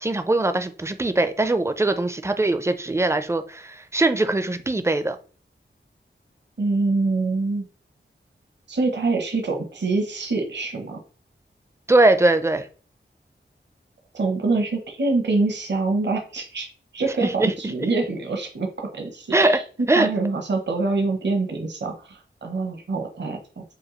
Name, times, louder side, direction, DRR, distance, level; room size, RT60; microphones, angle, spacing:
voice 1, 0.0-5.2 11.9-12.7 17.2-17.5 17.8-17.9 19.3-19.6 19.9-20.1, right 2 dB, 15° right, 10 dB, 0.4 m, -21 dB
voice 2, 6.6-7.7 8.7-11.0 14.1-16.7 16.9-19.6 19.9-23.6, right 3 dB, 60° right, 3 dB, 0.8 m, -25 dB
5.0 x 2.3 x 3.0 m, 0.40 s
wide cardioid pair, 75°, 21 cm